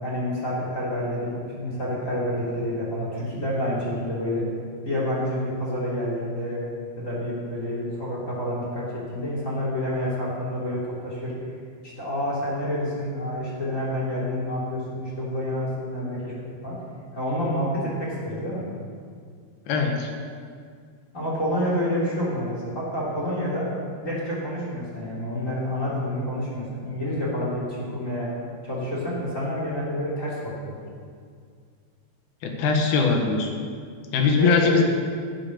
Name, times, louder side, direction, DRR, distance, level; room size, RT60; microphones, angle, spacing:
voice 1, 0.0-4.5 4.8-6.6 7.0-8.8 9.1-11.3 11.8-16.3 16.6-16.8 17.1-18.6 21.1-23.7 24.0-28.3 28.6-30.8 34.3-34.7, equal, 20° left, -7 dB, 3.0 m, -28 dB
voice 2, 19.7-20.1 32.4-33.5 34.1-34.8, left 5 dB, 75° left, 3 dB, 3.1 m, -21 dB
16.0 x 7.0 x 6.5 m, 2.1 s
omnidirectional pair, 4.6 m